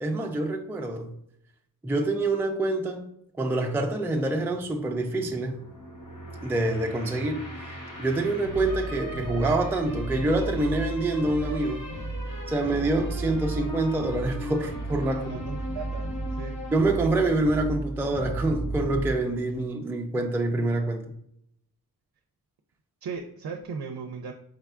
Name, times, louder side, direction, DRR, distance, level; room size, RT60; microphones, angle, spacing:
voice 1, 0.0-1.1 1.8-3.1 3.4-5.6 6.4-7.4 8.0-11.9 12.5-15.4 16.7-21.1, right 2 dB, 5° right, 0.4 m, -26 dB
sound 1, 4.6-19.2, right 2 dB, 60° left, 1.1 m, -34 dB
voice 2, 15.1-16.6 23.0-24.3, right 5 dB, 70° right, 0.5 m, -37 dB
5.0 x 3.4 x 2.4 m
wide cardioid pair, 115°, 37 cm